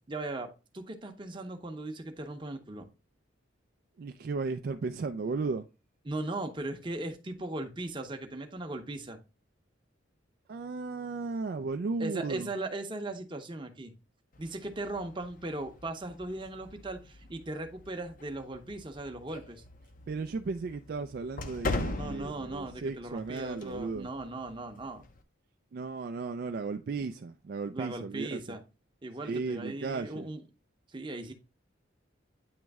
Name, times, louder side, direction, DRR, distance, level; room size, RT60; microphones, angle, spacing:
voice 1, 0.1-2.9 6.1-9.2 12.0-13.9 14.4-19.6 22.0-25.0 27.7-28.6 29.0-30.4 30.9-31.3, right 2 dB, 25° right, 0.7 m, -38 dB
voice 2, 4.0-5.7 10.5-12.5 20.1-24.1 25.7-28.6 29.2-30.3, right 4 dB, 50° right, 0.3 m, -35 dB
sound 1, 14.3-25.2, left 2 dB, 40° left, 0.6 m, -42 dB
8.7 x 3.1 x 3.4 m
head